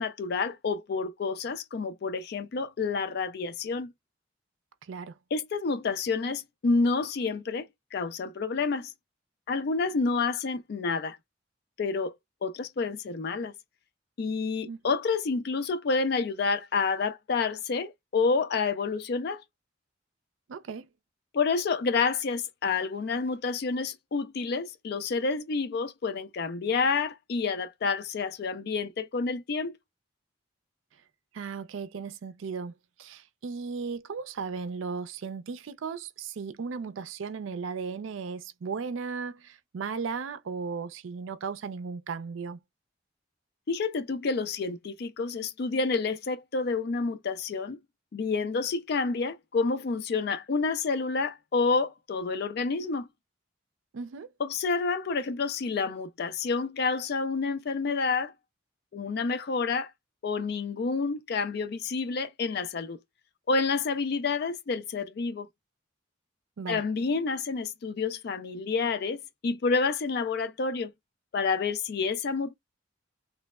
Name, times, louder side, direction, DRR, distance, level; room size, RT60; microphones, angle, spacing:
voice 1, 0.0-3.9 5.3-8.9 9.5-11.2 11.8-12.2 12.4-13.5 14.2-19.4 21.3-29.8 43.7-47.8 48.1-53.1 54.4-58.3 58.9-59.9 60.2-63.0 63.5-65.5 66.7-70.9 71.3-72.5, left 4 dB, 55° left, 0.4 m, -29 dB
voice 2, 4.8-5.2 14.7-14.8 20.5-20.9 31.3-42.6 53.9-54.3 66.6-66.8, right 5 dB, 80° right, 0.4 m, -36 dB
3.2 x 2.0 x 2.3 m
head